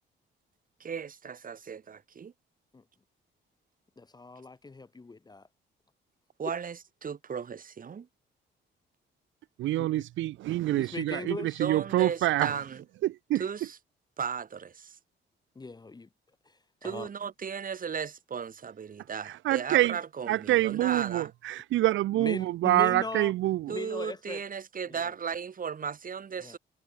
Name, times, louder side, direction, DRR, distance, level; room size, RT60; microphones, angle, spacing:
voice 1, 0.8-2.3 6.4-8.1 11.6-12.7 13.4-13.6 14.2-15.0 16.8-21.3 23.7-26.6, right 6 dB, 45° right, 2.8 m, -36 dB
voice 2, 4.0-5.5 9.8-10.0 10.7-11.6 15.5-16.1 16.5-16.6 16.8-17.1 22.2-23.3 23.7-24.4 24.9-25.1 26.4-26.6, left 3 dB, 20° left, 1.0 m, -39 dB
voice 3, 9.6-12.6 13.0-13.5 19.0-20.0 20.3-23.8, right 15 dB, 80° right, 0.6 m, -26 dB
cardioid pair, 90°, 20 cm